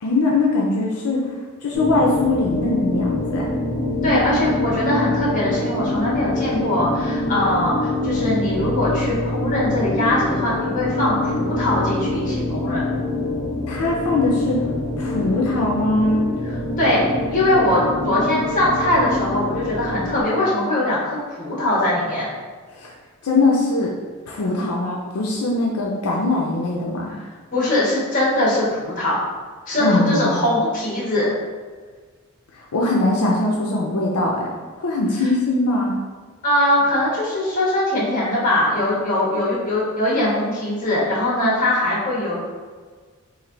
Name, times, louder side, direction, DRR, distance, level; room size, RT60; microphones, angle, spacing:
voice 1, 0.0-1.2 1.6-3.5 13.7-14.6 15.0-16.2 22.8-22.9 23.2-23.9 24.3-27.1 29.8-30.3 32.6-34.5 34.8-36.0, left 2 dB, 85° left, -2 dB, 0.5 m, -21 dB
sound 1, 1.7-20.2, left 2 dB, 55° left, 0.9 m, -25 dB
voice 2, 4.0-12.8 16.4-22.3 27.1-27.2 27.5-29.2 29.7-31.4 36.4-42.4, left 1 dB, 35° left, -6 dB, 1.3 m, -21 dB
3.2 x 2.6 x 3.8 m, 1.5 s
head